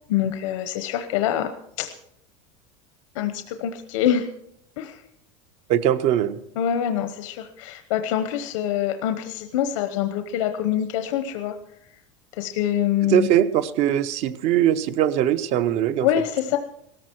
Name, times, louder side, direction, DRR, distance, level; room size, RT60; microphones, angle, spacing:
voice 1, 0.1-1.5 1.8-1.9 3.2-4.3 4.8-4.9 6.6-11.5 12.4-13.3 16.0-16.6, left 10 dB, 80° left, 8 dB, 1.0 m, -25 dB
voice 2, 5.7-6.4 13.0-16.1, right 10 dB, 40° right, 13 dB, 0.8 m, -21 dB
17.5 x 14.0 x 4.6 m, 0.75 s
supercardioid pair, 165°, 16 cm